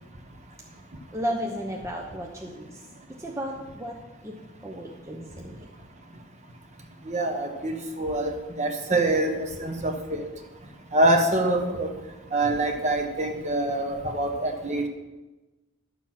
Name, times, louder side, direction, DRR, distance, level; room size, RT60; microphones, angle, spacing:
voice 1, 1.1-2.8 3.2-4.0 4.2-4.3 4.6-5.6, equal, 15° right, -1 dB, 0.9 m, -33 dB
voice 2, 7.1-10.2 10.9-11.9 12.3-14.8, right 1 dB, 35° right, 4 dB, 1.3 m, -25 dB
12.0 x 7.1 x 5.9 m, 1.1 s
head